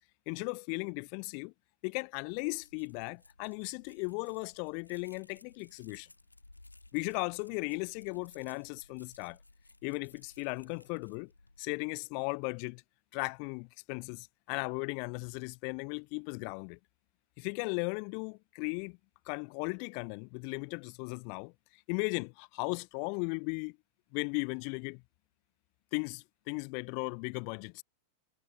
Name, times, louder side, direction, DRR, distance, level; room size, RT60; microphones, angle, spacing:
voice 1, 0.3-1.5 1.8-6.1 6.9-9.4 9.8-11.3 11.6-12.8 13.1-16.8 17.4-19.0 19.3-21.5 21.9-23.8 24.1-25.0 25.9-27.8, left 40 dB or more, 45° left, 0.9 m, -36 dB
sound 1, 2.3-11.6, left 2 dB, 85° left, 4.3 m, -60 dB
figure-of-eight pair, 90°, 0 cm